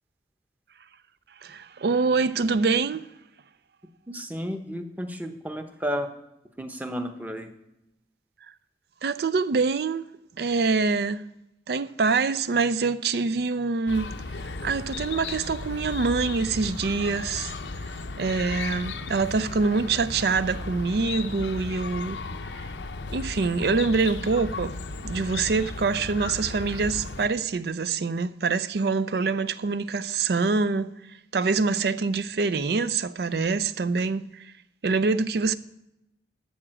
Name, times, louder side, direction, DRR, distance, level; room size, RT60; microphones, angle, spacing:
voice 1, 1.4-3.1 9.0-10.1 10.4-11.3 11.7-14.1 14.6-17.5 17.8-17.9 18.2-22.2 22.6-22.7 23.1-24.8 25.0-30.9 31.3-34.5 34.8-35.6, right 4 dB, 60° right, 0.4 m, -25 dB
voice 2, 4.1-6.1 6.6-7.5, equal, 10° right, 0.8 m, -32 dB
Chirp tweet, 13.9-27.3, left 3 dB, 85° left, 0.7 m, -35 dB
12.5 x 4.9 x 7.6 m
head